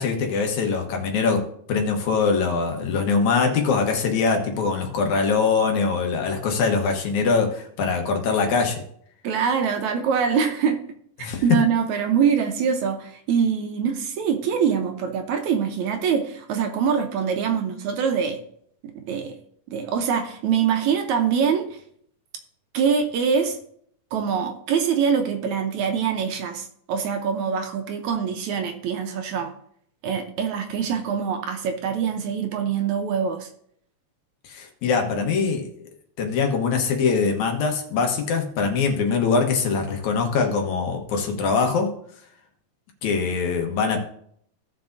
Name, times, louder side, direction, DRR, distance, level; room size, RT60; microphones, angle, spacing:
voice 1, 0.0-8.8 11.2-11.4 34.4-35.7 36.2-41.9 43.0-44.0, left 5 dB, 70° left, 2.4 m, -23 dB
voice 2, 9.2-10.8 11.2-18.4 19.0-19.4 19.7-21.8 22.7-23.6 24.1-29.5 30.0-33.5, right 7 dB, 75° right, 2.0 m, -24 dB
16.5 x 5.9 x 2.6 m
omnidirectional pair, 3.7 m